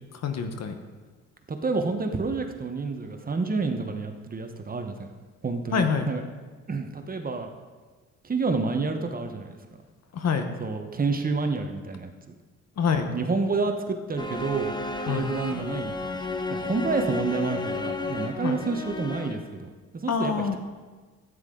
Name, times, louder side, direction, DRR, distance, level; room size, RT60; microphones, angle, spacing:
voice 1, 0.2-0.7 5.7-6.1 10.1-10.5 12.8-13.1 15.1-15.3 18.4-18.6 20.1-20.6, left 6 dB, 60° left, 7 dB, 1.2 m, -26 dB
voice 2, 1.5-5.1 5.4-6.2 6.7-7.5 8.2-9.6 10.6-12.1 13.1-14.7 15.1-16.2 16.5-20.6, right 4 dB, 30° right, 5 dB, 1.1 m, -29 dB
sound 1, 14.2-19.6, left 2 dB, 15° left, 0.8 m, -32 dB
12.5 x 9.5 x 3.9 m, 1.4 s
cardioid pair, 90°, 30 cm